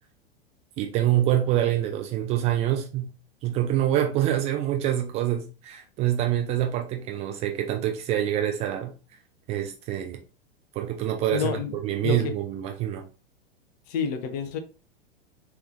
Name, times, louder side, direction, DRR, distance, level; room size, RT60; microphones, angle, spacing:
voice 1, 0.8-3.1 3.4-8.9 9.5-10.2 10.8-13.0, right 12 dB, 20° right, 0.4 m, -26 dB
voice 2, 11.3-11.8 12.0-12.3 13.9-14.6, left 7 dB, 40° left, 0.7 m, -28 dB
3.4 x 3.1 x 2.5 m
figure-of-eight pair, 95°, 31 cm